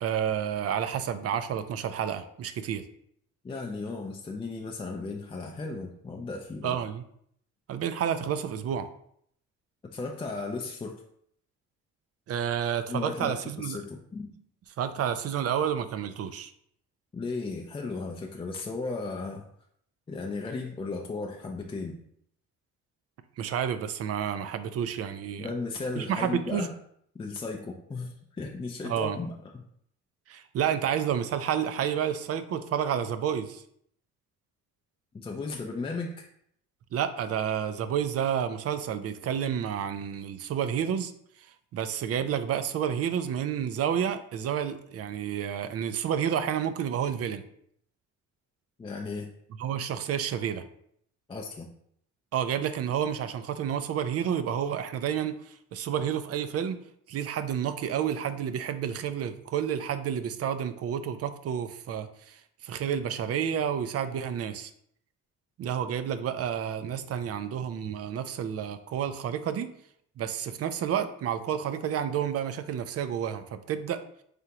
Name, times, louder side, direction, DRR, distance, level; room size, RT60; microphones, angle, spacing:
voice 1, 0.0-2.8 6.6-7.0 7.7-8.9 12.3-13.8 14.8-16.5 23.4-25.5 26.0-26.7 28.8-29.2 30.3-33.6 36.9-41.1 41.7-47.4 49.6-50.6 52.3-56.8 57.1-64.7 65.6-69.7 70.2-74.0, right 9 dB, 55° right, 11 dB, 0.4 m, -30 dB
voice 2, 3.4-6.8 9.9-11.0 12.9-14.3 17.1-19.4 20.1-22.0 25.4-26.7 27.1-29.6 35.2-36.3 48.8-49.3 51.3-51.7, left 3 dB, 20° left, 1 dB, 0.4 m, -35 dB
3.6 x 3.4 x 2.9 m, 0.68 s
cardioid pair, 90°, 30 cm